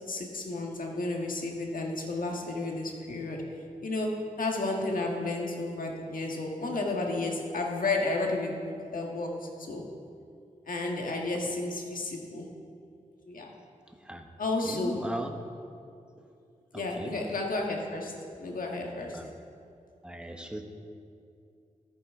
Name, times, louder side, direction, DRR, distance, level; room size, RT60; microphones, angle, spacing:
voice 1, 0.1-3.4 3.8-9.8 10.7-12.5 13.3-13.5 14.4-15.0 16.7-19.2, left 2 dB, 75° left, 0 dB, 1.5 m, -32 dB
voice 2, 14.6-15.3 16.7-17.1 19.1-19.3 20.0-20.6, right 1 dB, 5° right, 4 dB, 0.9 m, -37 dB
13.5 x 9.2 x 3.7 m, 2.5 s
wide cardioid pair, 90°, 14 cm